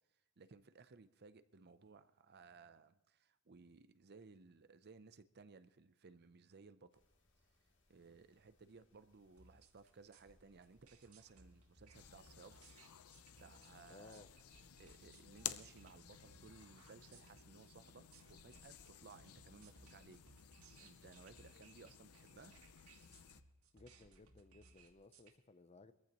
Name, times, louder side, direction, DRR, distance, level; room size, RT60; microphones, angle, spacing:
voice 1, 0.1-7.0 7.9-12.6 13.4-14.3 14.8-20.2 20.8-22.6, right 4 dB, 50° right, 0.6 m, -60 dB
sound 1, 6.9-12.4, left 1 dB, 60° left, 2.3 m, -78 dB
sound 2, 9.4-25.3, right 3 dB, 85° right, 2.0 m, -65 dB
sound 3, 11.9-23.4, left 10 dB, 85° left, 0.7 m, -54 dB
voice 2, 13.9-14.3 23.7-25.9, left 3 dB, 30° left, 0.6 m, -60 dB
23.0 x 14.5 x 3.0 m
head